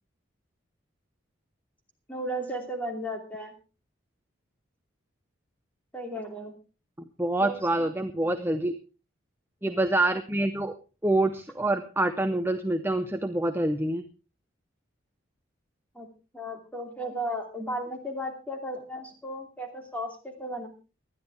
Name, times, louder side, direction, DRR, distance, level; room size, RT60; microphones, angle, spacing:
voice 1, 2.1-3.5 5.9-6.5 7.4-7.9 15.9-16.1 16.3-20.7, equal, 5° left, 3 dB, 2.7 m, -35 dB
voice 2, 7.2-8.8 9.6-10.7 11.0-14.0, right 2 dB, 10° right, 8 dB, 0.6 m, -26 dB
20.0 x 12.5 x 3.4 m, 0.32 s
head